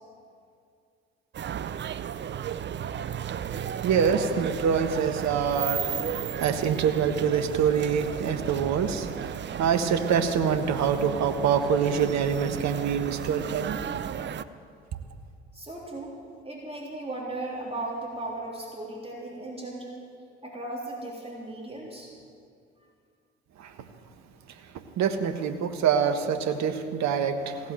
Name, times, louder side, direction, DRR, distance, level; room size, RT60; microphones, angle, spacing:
sound 1, 1.3-14.4, right 9 dB, 35° right, 0.6 m, -34 dB
voice 1, 3.5-13.8 23.6-23.7 24.7-27.7, right 7 dB, 55° right, 9 dB, 1.4 m, -26 dB
voice 2, 15.5-16.1 16.4-20.0 20.4-22.1, right 2 dB, 20° right, -3 dB, 3.5 m, -36 dB
16.5 x 8.3 x 9.2 m, 2.3 s
hypercardioid pair, 55°, 33 cm